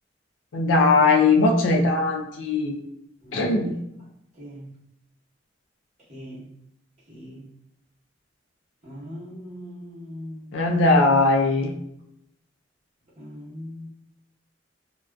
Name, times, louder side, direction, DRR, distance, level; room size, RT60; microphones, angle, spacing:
voice 1, 0.5-2.8 3.3-3.8 10.5-11.7, left 3 dB, 80° left, 2 dB, 0.4 m, -19 dB
voice 2, 3.2-3.6 4.3-4.7 6.1-6.5 7.1-7.5 8.8-10.8 13.2-13.9, equal, 35° right, -8 dB, 1.0 m, -40 dB
2.4 x 2.3 x 2.2 m, 0.78 s
head